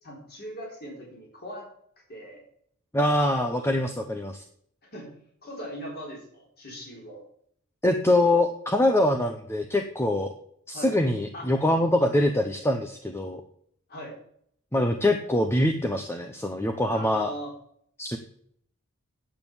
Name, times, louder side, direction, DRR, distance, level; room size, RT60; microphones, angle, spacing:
voice 1, 0.0-1.7 2.1-2.4 4.9-5.1 5.4-7.2 10.7-10.9 11.3-11.5 13.9-14.1 16.9-17.5, equal, 50° left, -2 dB, 4.1 m, -39 dB
voice 2, 2.9-4.4 7.8-10.3 10.7-13.4 14.7-17.3 18.0-18.2, left 1 dB, 10° left, 5 dB, 0.7 m, -24 dB
9.0 x 8.1 x 7.1 m, 0.66 s
head